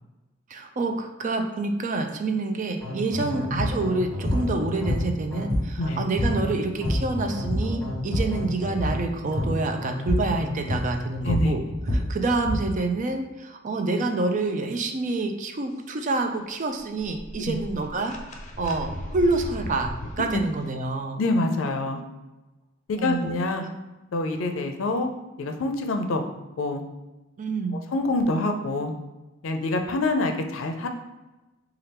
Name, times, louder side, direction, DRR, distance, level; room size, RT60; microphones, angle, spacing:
voice 1, 0.5-11.6 11.9-18.2 18.6-21.2 23.0-23.3 27.4-27.8, right 3 dB, 40° right, 5 dB, 0.4 m, -27 dB
sound 1, 2.8-10.7, left 2 dB, 10° left, 1.1 m, -34 dB
sound 2, 3.6-3.8 4.2-4.5 4.9-5.9 6.2-6.4 6.7-7.2 7.4-8.4 8.7-9.0 9.4-9.6 10.1-10.3 10.7-12.7, equal, 70° right, 1.0 m, -26 dB
sound 3, 16.8-20.3, left 1 dB, 35° left, 0.5 m, -37 dB
voice 2, 21.2-22.0 22.9-23.6 24.1-25.1 25.4-26.2 26.6-26.8 27.9-28.9 29.4-30.9, left 2 dB, 90° left, 5 dB, 0.5 m, -26 dB
3.3 x 2.4 x 4.3 m, 1.1 s
head